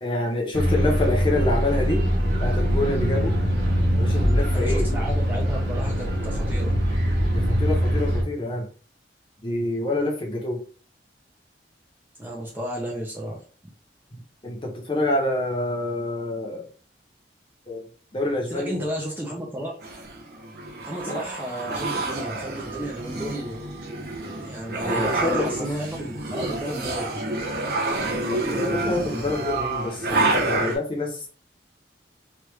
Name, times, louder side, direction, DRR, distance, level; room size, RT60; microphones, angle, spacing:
voice 1, 0.0-2.0 2.4-3.4 4.0-4.9 7.3-8.7 9.4-10.6 14.4-16.7 17.7-17.8 18.1-18.8 21.0-21.2 24.8-25.7 28.3-31.3, left 2 dB, 30° left, 0 dB, 0.8 m, -27 dB
sound 1, 0.5-8.2, equal, 85° right, 1.1 m, -22 dB
voice 2, 4.5-6.7 12.2-13.4 18.5-19.8 20.8-23.7 24.4-27.1, right 1 dB, 10° right, -3 dB, 0.6 m, -33 dB
sound 2, 19.8-30.8, right 2 dB, 55° right, 0.7 m, -28 dB
3.1 x 2.5 x 3.2 m, 0.40 s
head